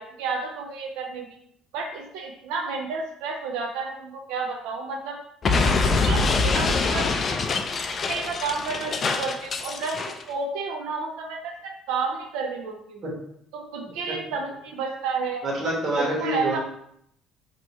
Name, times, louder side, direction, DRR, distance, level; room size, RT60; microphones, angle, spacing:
voice 1, 0.0-1.4 1.7-5.2 5.9-7.5 8.1-13.0 13.5-15.4 16.0-16.6, right 4 dB, 90° right, 2 dB, 0.4 m, -31 dB
Explosion, 5.4-10.2, left 4 dB, 35° left, 0.3 m, -24 dB
voice 2, 15.4-16.6, right 1 dB, 45° right, -5 dB, 1.2 m, -26 dB
2.9 x 2.3 x 4.1 m, 0.71 s
cardioid pair, 125°, 0 cm